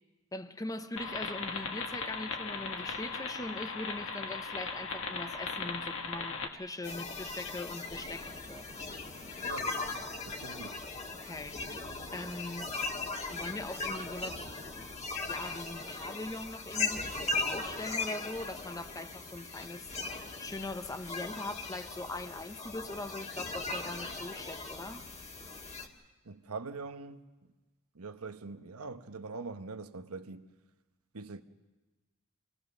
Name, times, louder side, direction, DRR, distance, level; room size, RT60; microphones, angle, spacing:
voice 1, 0.3-8.7 11.1-11.7 12.1-12.7 13.2-15.0 15.3-19.9 20.4-25.0, left 2 dB, 15° left, 0.8 m, -41 dB
sound 1, 1.0-6.5, left 4 dB, 65° left, 1.7 m, -38 dB
sound 2, 6.8-25.9, left 3 dB, 30° left, 1.7 m, -38 dB
voice 2, 9.4-9.7 10.2-10.8 26.2-27.3 27.9-30.5 31.1-31.4, right 4 dB, 85° right, 1.0 m, -43 dB
25.5 x 18.0 x 6.5 m
head